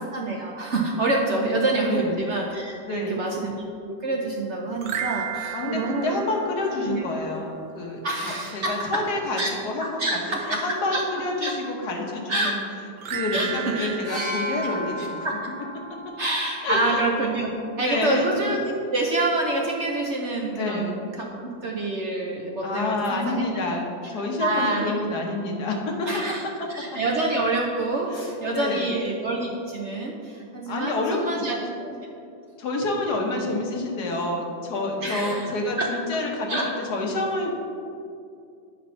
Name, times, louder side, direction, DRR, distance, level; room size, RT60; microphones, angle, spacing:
voice 1, 0.0-3.6 3.9-6.2 6.9-7.0 8.0-9.0 9.4-9.5 9.8-10.6 10.9-11.0 11.4-11.5 12.3-12.5 13.3-13.9 14.6-15.3 15.6-15.7 16.2-17.5 17.8-23.5 24.4-24.9 26.1-26.4 26.7-31.9 35.0-35.5 35.8-35.9 36.5-36.7, right 2 dB, 65° right, -1 dB, 0.6 m, -27 dB
voice 2, 1.9-2.2 2.8-3.3 5.5-10.2 10.5-12.6 13.0-15.3 16.6-17.0 17.8-18.4 20.5-20.9 22.6-26.1 28.1-28.9 30.7-31.7 32.6-36.6 36.9-37.5, left 2 dB, 60° left, 0 dB, 1.6 m, -28 dB
sound 1, 4.8-7.3 13.0-15.6, right 9 dB, 80° right, 1.5 m, -35 dB
sound 2, 14.0-17.9 18.9-19.0, left 1 dB, 45° left, 2.1 m, -35 dB
9.0 x 4.3 x 5.6 m, 2.4 s
omnidirectional pair, 2.1 m